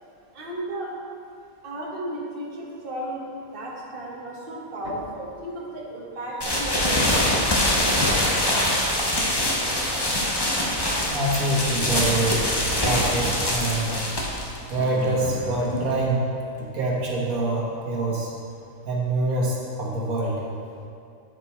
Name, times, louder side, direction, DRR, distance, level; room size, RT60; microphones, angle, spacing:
voice 1, 0.3-0.9 1.6-3.2 3.5-7.2, right 1 dB, 40° right, -3 dB, 1.3 m, -34 dB
sound 1, 6.4-16.0, left 1 dB, 20° left, 0.7 m, -24 dB
voice 2, 11.1-12.4 12.8-14.0 14.7-16.3 16.6-18.3 18.9-20.4, right 2 dB, 85° right, -4 dB, 1.7 m, -25 dB
8.9 x 5.2 x 4.3 m, 2.5 s
omnidirectional pair, 1.5 m